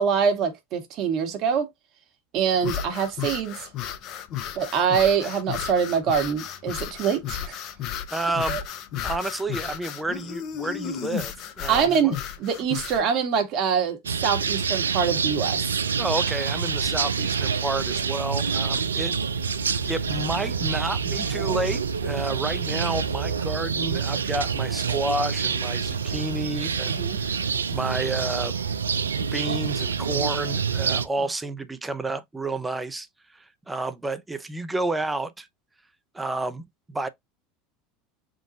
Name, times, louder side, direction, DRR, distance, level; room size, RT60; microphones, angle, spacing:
voice 1, 0.0-1.7 2.3-3.7 4.5-7.6 8.5-8.6 11.7-15.7 26.8-27.2, right 7 dB, 50° right, 1.4 m, -24 dB
sound 1, 2.6-13.0, left 9 dB, 50° left, 0.8 m, -33 dB
voice 2, 8.1-8.6 9.0-12.1 16.0-19.2 19.9-26.9 27.2-28.5 29.2-35.5 36.1-37.1, right 2 dB, 15° right, 0.6 m, -30 dB
sound 2, 14.0-31.0, right 6 dB, 90° right, 0.4 m, -27 dB
3.8 x 2.4 x 4.0 m
hypercardioid pair, 80°, 0 cm